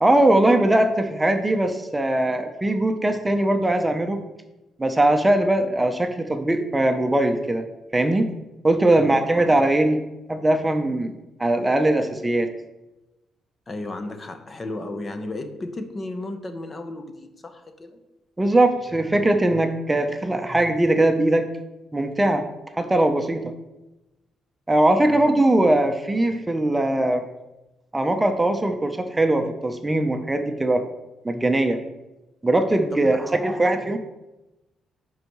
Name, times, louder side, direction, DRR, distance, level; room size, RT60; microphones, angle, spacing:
voice 1, 0.0-4.2 4.8-7.7 7.9-8.3 8.6-10.0 10.3-11.1 11.4-12.5 18.4-21.5 21.9-22.5 22.8-23.5 24.7-27.2 27.9-30.8 31.2-31.8 32.4-34.0, right 1 dB, 15° right, 6 dB, 0.7 m, -20 dB
voice 2, 8.9-9.2 13.7-18.0 25.0-25.2 32.9-33.6, left 2 dB, 35° left, 8 dB, 0.7 m, -34 dB
10.5 x 4.7 x 3.1 m, 1.0 s
cardioid pair, 90°, 0 cm